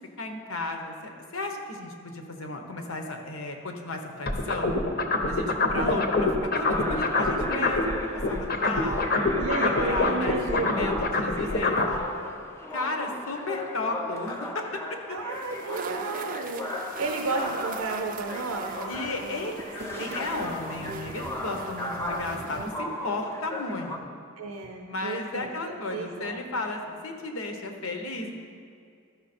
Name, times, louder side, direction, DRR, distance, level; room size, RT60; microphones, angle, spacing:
voice 1, 0.2-4.7 5.2-6.3 6.5-9.1 9.6-12.0 12.7-14.8 18.9-19.5 20.0-24.1 24.9-28.3, left 2 dB, 85° left, 4 dB, 1.0 m, -34 dB
sound 1, 4.3-7.9 8.2-12.0, left 3 dB, 45° left, 0.8 m, -25 dB
voice 2, 5.8-6.1 9.4-10.9 15.1-16.7 17.0-19.0 24.4-25.6 25.9-26.4, right 3 dB, 85° right, 2 dB, 0.6 m, -32 dB
sound 2, 6.6-24.0, left 1 dB, 15° left, 0.6 m, -37 dB
sound 3, 15.3-22.7, right 4 dB, 40° right, 0.4 m, -39 dB
13.0 x 5.7 x 4.3 m, 2.4 s
head